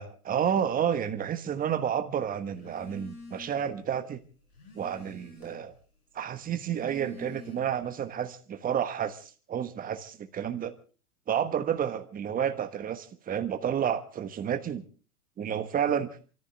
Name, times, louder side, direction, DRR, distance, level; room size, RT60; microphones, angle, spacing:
voice 1, 0.0-4.2 4.8-5.7 6.1-10.7 11.3-14.8 15.4-16.1, right 9 dB, 20° right, 1.3 m, -30 dB
Telephone, 2.5-3.8 4.1-5.8 6.4-7.9, left 3 dB, 75° left, 6.1 m, -48 dB
27.0 x 14.0 x 3.4 m
hypercardioid pair, 125°, 44 cm